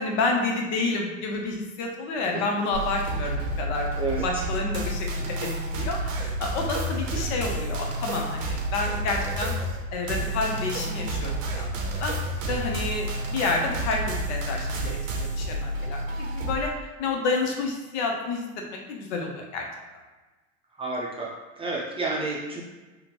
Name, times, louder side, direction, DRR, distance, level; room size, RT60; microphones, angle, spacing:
voice 1, 0.0-3.9 4.2-5.5 5.8-9.5 9.9-11.7 12.0-12.1 12.5-16.7 17.0-18.4 18.9-19.6, left 3 dB, 65° left, 1 dB, 0.8 m, -29 dB
sound 1, 2.7-16.6, right 1 dB, 85° right, 0.7 m, -30 dB
voice 2, 4.0-4.4 20.8-21.3 21.6-22.6, right 2 dB, 15° right, -4 dB, 0.6 m, -30 dB
3.6 x 2.2 x 2.9 m, 1.2 s
hypercardioid pair, 105°, 38 cm